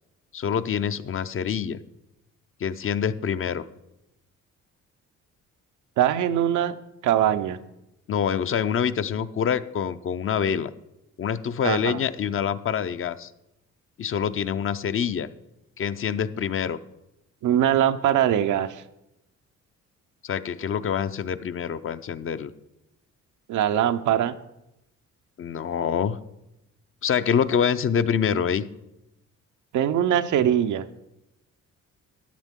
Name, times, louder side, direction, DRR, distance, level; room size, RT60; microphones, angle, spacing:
voice 1, 0.3-1.8 2.6-3.6 8.1-10.7 11.2-13.3 14.0-15.3 15.8-16.8 20.2-22.5 25.4-26.2 27.0-28.7, left 7 dB, 45° left, 12 dB, 0.6 m, -26 dB
voice 2, 6.0-6.8 7.0-7.6 11.6-12.0 17.4-18.8 23.5-24.4 29.7-30.8, right 10 dB, 80° right, 10 dB, 0.7 m, -22 dB
13.5 x 9.8 x 3.7 m, 0.89 s
cardioid pair, 90°, 30 cm